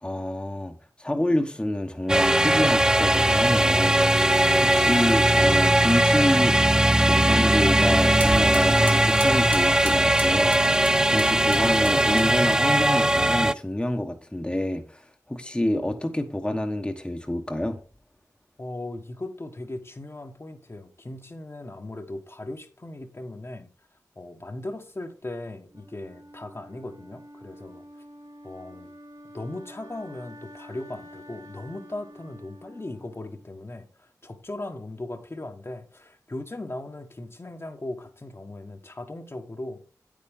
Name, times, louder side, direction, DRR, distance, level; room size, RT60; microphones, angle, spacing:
voice 1, 0.0-6.6 7.1-17.8, left 1 dB, 15° left, 1.2 m, -28 dB
sound 1, 2.1-13.5, right 1 dB, 10° right, 0.4 m, -20 dB
sound 2, 5.9-12.6, right 2 dB, 30° right, 1.7 m, -39 dB
voice 2, 18.6-23.7 24.1-27.8 28.4-28.9 29.3-39.8, left 2 dB, 40° left, 1.4 m, -38 dB
Wind instrument woodwind instrument, 25.7-33.7, equal, 60° right, 2.3 m, -48 dB
8.6 x 8.6 x 3.7 m
cardioid pair, 45°, 7 cm